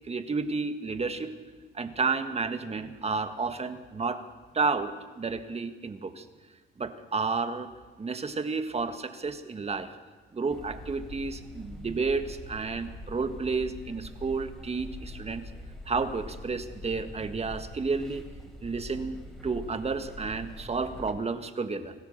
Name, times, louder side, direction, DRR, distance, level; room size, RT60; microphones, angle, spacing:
voice 1, 0.1-1.3 1.7-4.2 4.5-6.3 6.8-7.7 8.0-9.9 10.3-15.4 15.9-18.2 18.6-21.9, right 4 dB, 30° right, 9 dB, 1.8 m, -31 dB
sound 1, 10.5-21.1, left 1 dB, 5° left, 4.2 m, -44 dB
26.0 x 15.0 x 6.7 m, 1.4 s
cardioid pair, 90°, 20 cm